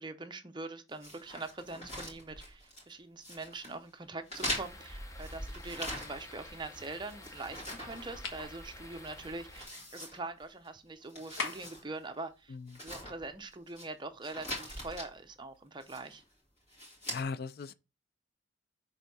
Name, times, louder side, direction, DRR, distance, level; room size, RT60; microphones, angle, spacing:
voice 1, 0.0-12.6 12.8-16.2, right 3 dB, 25° right, 0.6 m, -43 dB
sound 1, 1.0-2.9 3.2-3.7 4.3-6.4 6.7-8.7 9.0-9.1 9.5-10.7 11.0-11.8 12.1-12.2 12.7-13.9 14.2-15.1 15.8-16.2 16.7-17.2, equal, 35° left, 2.5 m, -42 dB
sound 2, 4.5-9.7, left 1 dB, 15° left, 0.7 m, -48 dB
sound 3, 8.2-8.5 11.4-11.8, left 4 dB, 80° left, 1.3 m, -37 dB
voice 2, 12.5-12.8 17.1-17.7, left 4 dB, 50° left, 0.3 m, -38 dB
6.6 x 3.7 x 4.0 m
head